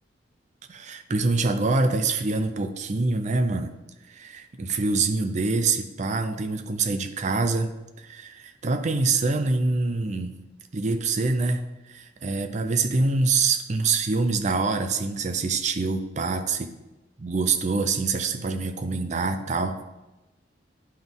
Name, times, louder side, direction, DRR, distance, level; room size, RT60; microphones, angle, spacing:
voice 1, 0.7-3.7 4.1-10.4 10.7-11.6 11.9-16.7 17.2-19.8, right 3 dB, 40° right, 7 dB, 0.5 m, -25 dB
11.0 x 4.0 x 3.6 m, 1.1 s
head